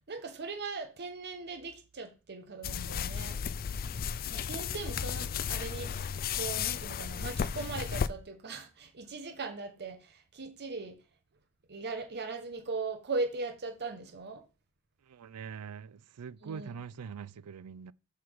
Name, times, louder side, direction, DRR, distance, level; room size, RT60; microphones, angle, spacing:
voice 1, 0.1-3.4 4.3-11.0 11.7-14.4 16.4-16.7, right 3 dB, 50° right, 1.1 m, -39 dB
sound 1, 2.6-8.1, left 7 dB, 40° left, 0.4 m, -34 dB
voice 2, 15.1-17.9, right 6 dB, 90° right, 0.4 m, -43 dB
6.0 x 5.7 x 4.7 m
head